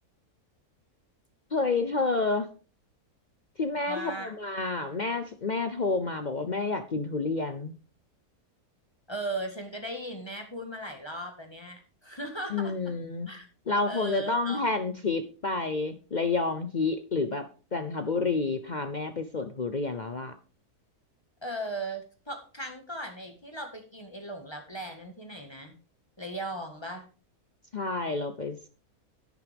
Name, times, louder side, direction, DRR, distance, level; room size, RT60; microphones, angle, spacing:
voice 1, 1.5-2.5 3.6-7.7 12.5-13.3 13.7-17.4 17.7-20.3 27.7-28.7, left 3 dB, 45° left, 9 dB, 0.6 m, -29 dB
voice 2, 3.9-4.3 9.1-12.9 13.3-13.5 13.9-14.6 21.4-25.8 26.2-27.1, right 1 dB, 15° left, 4 dB, 1.7 m, -37 dB
11.0 x 9.5 x 3.5 m, 0.35 s
omnidirectional pair, 1.6 m